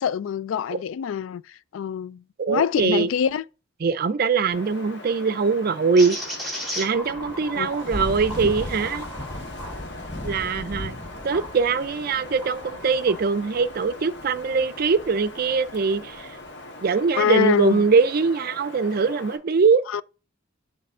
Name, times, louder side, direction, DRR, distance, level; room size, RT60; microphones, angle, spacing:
voice 1, 0.0-3.4 7.6-7.7 17.2-17.8 19.9-20.0, left 8 dB, 80° left, 0.3 m, -25 dB
voice 2, 2.4-3.1 3.8-6.2 6.8-9.1 10.2-11.0 11.2-16.4 16.8-19.8, right 5 dB, 50° right, 0.4 m, -22 dB
Wind, 4.5-19.4, left 2 dB, 60° left, 1.4 m, -41 dB
sound 1, 6.0-11.5 12.0-13.2, equal, ahead, 2.3 m, -37 dB
Thunder / Rain, 7.0-16.5, left 1 dB, 15° left, 0.5 m, -38 dB
7.5 x 3.3 x 5.5 m
head